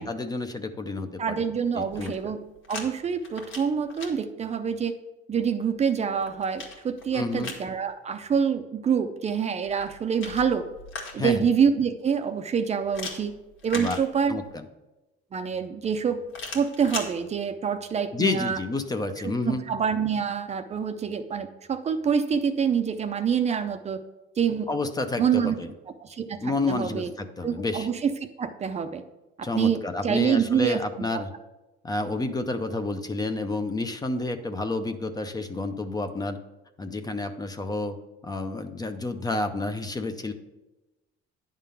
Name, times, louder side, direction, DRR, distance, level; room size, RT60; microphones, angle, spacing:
voice 1, 0.0-1.4 1.7-2.3 7.1-7.5 11.2-11.4 13.7-14.0 14.3-14.6 18.1-19.6 24.7-25.7 26.4-27.9 29.4-31.3 31.8-36.4 36.8-38.0 38.2-40.3, left 3 dB, 20° left, 8 dB, 0.5 m, -30 dB
voice 2, 1.2-2.4 2.7-4.9 5.3-10.7 11.1-13.3 13.6-14.4 15.3-16.3 16.5-18.6 19.1-24.0 24.4-24.7 25.2-25.6 25.9-27.1 27.4-29.0 29.4-31.2, right 7 dB, 30° right, 9 dB, 0.5 m, -26 dB
sound 1, 1.8-2.9 3.2-4.1 5.8-7.7 9.7-11.4 12.9-14.5 16.3-17.1, left 3 dB, 70° left, 1.8 m, -39 dB
10.0 x 3.7 x 6.8 m, 1.1 s
cardioid pair, 135°, 21 cm